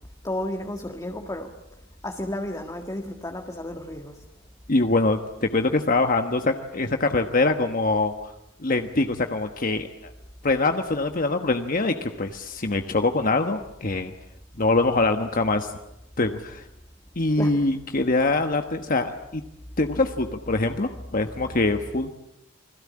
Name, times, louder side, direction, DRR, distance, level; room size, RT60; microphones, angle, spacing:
voice 1, 0.2-1.5 2.0-4.1 17.4-17.5, left 1 dB, 20° left, 3 dB, 1.9 m, -32 dB
voice 2, 4.7-8.3 8.6-10.1 10.4-14.1 14.6-15.7 16.2-16.6 17.1-19.4 19.8-22.1, left 2 dB, 45° left, 6 dB, 1.3 m, -24 dB
29.0 x 21.5 x 8.7 m, 0.84 s
head